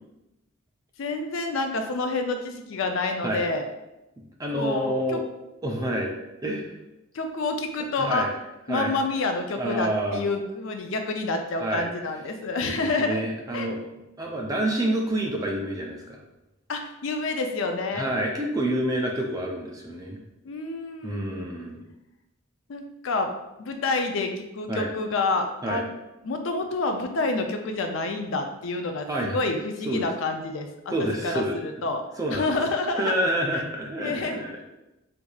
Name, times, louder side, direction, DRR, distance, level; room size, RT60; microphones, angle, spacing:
voice 1, 1.0-3.7 4.5-5.2 7.1-8.3 8.7-13.2 13.5-13.7 16.7-18.1 20.4-21.5 22.7-23.3 23.6-25.9 26.2-30.9 31.2-32.0 32.3-33.1 33.5-33.6 34.0-34.4, left 3 dB, 65° left, 5 dB, 0.4 m, -28 dB
voice 2, 4.4-5.2 5.6-6.1 6.4-6.7 8.0-8.3 8.7-9.0 9.6-10.2 11.6-11.9 12.6-13.8 14.2-16.2 17.9-20.2 21.0-21.8 24.7-24.9 25.6-25.8 29.1-29.4 29.9-30.0 30.9-31.6 32.2-32.6 33.0-34.5, right 1 dB, 15° right, 0 dB, 0.4 m, -28 dB
4.5 x 2.6 x 2.3 m, 0.94 s
head